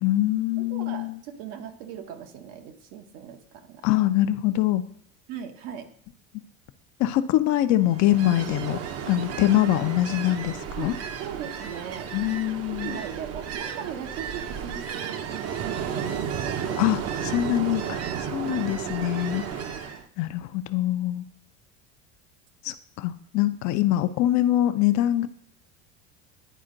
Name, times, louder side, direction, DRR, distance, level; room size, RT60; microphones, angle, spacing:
voice 1, 0.0-1.2 3.8-4.8 7.0-8.8 9.1-10.9 12.1-12.9 16.8-18.0 18.3-19.4 19.7-19.8 20.2-21.2 22.6-25.3, left 14 dB, 55° left, 11 dB, 0.6 m, -24 dB
voice 2, 0.6-3.9 5.3-5.9 10.7-12.1 12.7-17.3 17.7-18.0 18.4-18.7, right 8 dB, 70° right, 6 dB, 1.1 m, -39 dB
Ocean, 7.9-20.0, right 8 dB, 45° right, 0.8 m, -33 dB
10.0 x 4.3 x 3.8 m, 0.65 s
supercardioid pair, 100°, 34 cm